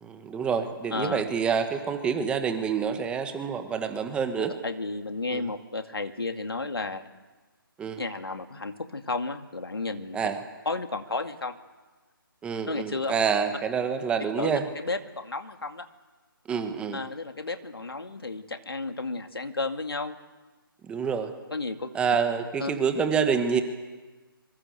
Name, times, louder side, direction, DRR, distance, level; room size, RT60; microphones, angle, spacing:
voice 1, 0.0-4.5 5.3-5.4 7.8-8.0 10.1-10.4 12.4-14.7 16.5-17.0 20.8-21.3 21.9-23.6, right 6 dB, 10° right, 7 dB, 1.6 m, -27 dB
voice 2, 0.9-1.2 4.4-7.1 8.0-10.2 10.7-11.6 12.6-13.1 14.4-15.9 16.9-20.2 21.5-21.9 22.6-22.8, left 3 dB, 85° left, 7 dB, 2.3 m, -32 dB
25.5 x 23.5 x 8.0 m, 1.3 s
figure-of-eight pair, 150°, 12 cm